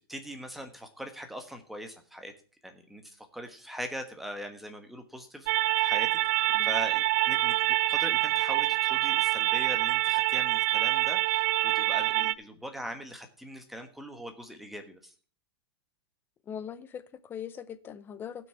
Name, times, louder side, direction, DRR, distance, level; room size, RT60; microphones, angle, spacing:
voice 1, 0.1-2.3 2.6-5.5 5.8-15.1, equal, ahead, 1.3 m, -41 dB
sound 1, 5.5-12.3, right 18 dB, 45° right, 0.4 m, -26 dB
voice 2, 16.5-18.5, left 8 dB, 15° left, 0.6 m, -41 dB
16.5 x 6.2 x 4.4 m
supercardioid pair, 160°, 13 cm